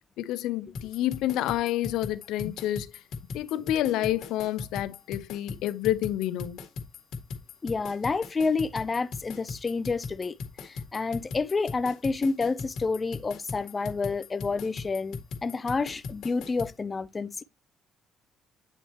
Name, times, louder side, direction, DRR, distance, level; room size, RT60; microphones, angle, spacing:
voice 1, 0.2-2.9 3.3-6.6, left 13 dB, 90° left, 0.6 m, -29 dB
sound 1, 0.7-16.7, left 4 dB, 70° left, 1.8 m, -39 dB
voice 2, 7.6-10.3 10.6-17.4, left 4 dB, 25° left, 0.5 m, -29 dB
9.1 x 4.3 x 2.9 m
cardioid pair, 130°, 0 cm